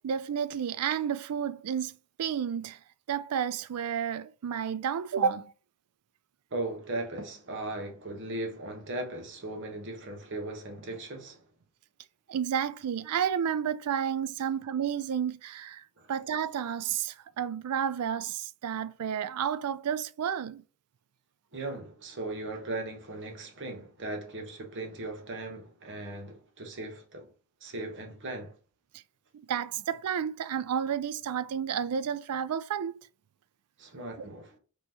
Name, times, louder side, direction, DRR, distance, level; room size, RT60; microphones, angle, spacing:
voice 1, 0.0-2.8 3.1-5.5 12.3-20.6 29.5-32.9, right 8 dB, 85° right, 0.4 m, -31 dB
voice 2, 6.5-11.4 16.0-16.1 21.5-27.3 27.6-28.5 33.8-34.6, right 2 dB, 55° right, 1.1 m, -38 dB
5.4 x 3.0 x 2.9 m
head